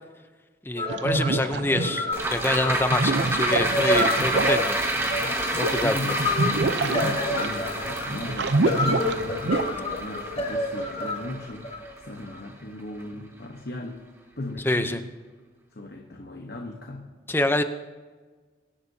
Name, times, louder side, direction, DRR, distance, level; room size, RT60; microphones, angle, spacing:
voice 1, 0.6-4.8 5.6-6.0 14.6-15.0 17.3-17.6, left 1 dB, 10° left, 9 dB, 0.6 m, -26 dB
sound 1, 0.8-12.4, left 1 dB, 35° left, 1.6 m, -29 dB
sound 2, 0.9-2.3 2.7-9.6, right 3 dB, 80° right, 0.6 m, -27 dB
sound 3, 2.1-12.6 13.0-13.1, right 1 dB, 15° right, 1.3 m, -29 dB
voice 2, 5.8-11.7 12.0-14.0 14.4-15.1 15.7-17.1, left 1 dB, 60° left, 2 dB, 1.1 m, -37 dB
23.5 x 11.5 x 2.8 m, 1.4 s
head